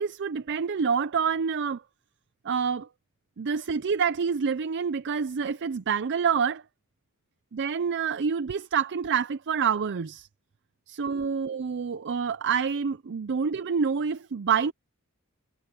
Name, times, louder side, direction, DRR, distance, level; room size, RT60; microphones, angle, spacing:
voice 1, 0.0-1.8 2.4-2.9 3.4-6.6 7.5-10.3 10.9-14.7, right 6 dB, 50° right, 0.5 m, -27 dB
head